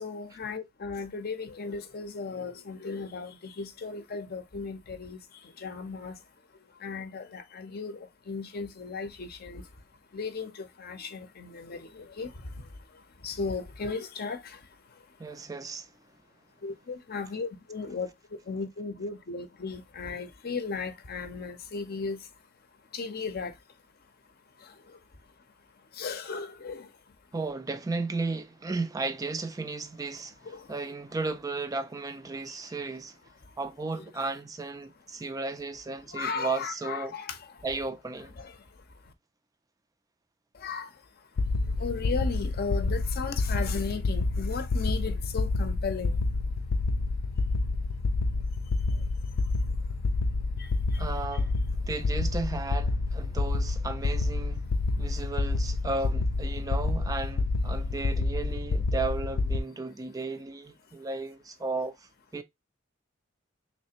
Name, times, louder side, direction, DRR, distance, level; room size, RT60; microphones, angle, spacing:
voice 1, 0.0-6.2 6.6-9.7 10.1-15.0 15.4-15.5 16.6-22.3 22.9-23.6 24.6-25.0 25.9-27.1 30.4-30.9 32.4-32.6 33.4-33.5 34.0-34.1 36.1-37.7 38.4-38.7 39.0-39.1 40.5-41.0 41.6-46.2 48.9-49.0 50.6-51.1, left 4 dB, 50° left, 0.6 m, -36 dB
voice 2, 15.2-15.9 27.3-30.3 30.7-33.1 33.6-37.1 37.6-38.3 51.0-51.5 51.9-54.6 55.0-61.9 62.3-62.4, right 3 dB, 20° right, 0.3 m, -34 dB
sound 1, 41.4-59.6, left 3 dB, 90° left, 0.4 m, -28 dB
3.3 x 3.2 x 2.8 m
head